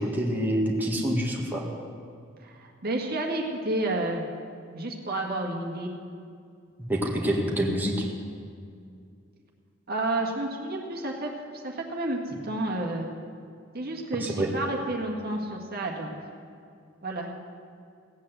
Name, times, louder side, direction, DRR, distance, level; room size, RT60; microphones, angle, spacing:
voice 1, 0.0-1.6 6.9-8.1 14.2-14.5, right 1 dB, 10° right, -2 dB, 1.8 m, -26 dB
voice 2, 2.4-4.2 4.7-5.9 9.9-11.3 11.6-13.1 13.7-16.1 17.0-17.3, right 2 dB, 50° right, 0 dB, 1.8 m, -30 dB
16.5 x 8.6 x 8.0 m, 2.3 s
head